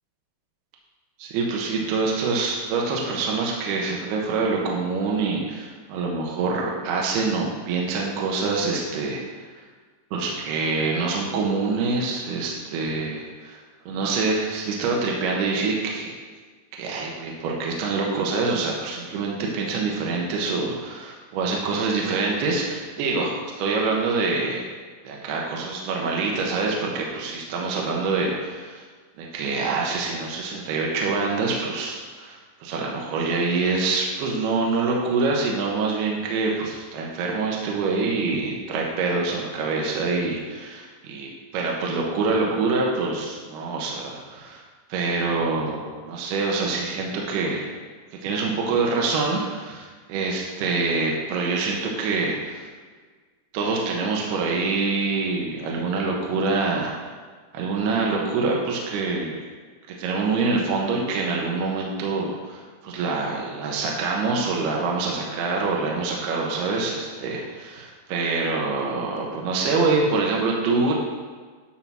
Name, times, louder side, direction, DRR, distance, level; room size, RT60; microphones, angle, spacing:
voice 1, 1.2-9.2 10.1-16.1 16.8-23.3 23.6-24.7 25.0-28.9 29.2-44.6 44.9-47.7 48.2-52.7 53.5-56.9 57.5-59.4 60.0-70.9, right 3 dB, 70° right, -2 dB, 2.7 m, -25 dB
10.5 x 3.8 x 6.0 m, 1.5 s
omnidirectional pair, 5.6 m